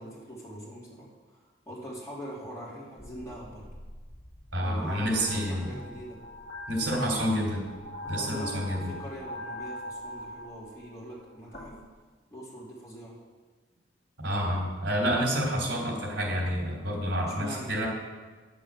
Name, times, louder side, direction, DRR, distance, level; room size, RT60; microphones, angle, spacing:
voice 1, 0.0-1.4 1.7-3.7 4.6-6.2 6.7-7.3 8.1-11.8 12.3-13.2 17.3-17.7, equal, 15° left, -6 dB, 3.3 m, -42 dB
sound 1, 3.0-11.9, equal, 55° left, 2.1 m, -42 dB
voice 2, 4.5-5.7 6.7-7.6 8.0-8.9 14.2-17.9, equal, 80° right, -1 dB, 3.5 m, -29 dB
9.9 x 7.9 x 7.4 m, 1.3 s
head